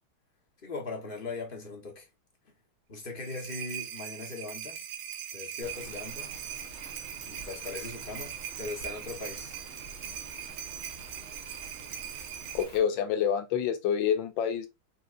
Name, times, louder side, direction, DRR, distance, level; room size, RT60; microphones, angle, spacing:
voice 1, 0.6-2.1 2.9-4.8 5.3-6.3 7.2-9.7, left 3 dB, 35° left, 1.0 m, -39 dB
sound 1, 3.0-12.6, right 10 dB, 85° right, 1.4 m, -41 dB
Rain, 5.6-12.8, right 3 dB, 45° right, 1.1 m, -47 dB
voice 2, 12.5-14.7, left 8 dB, 85° left, 1.5 m, -27 dB
4.2 x 4.0 x 2.4 m
omnidirectional pair, 2.1 m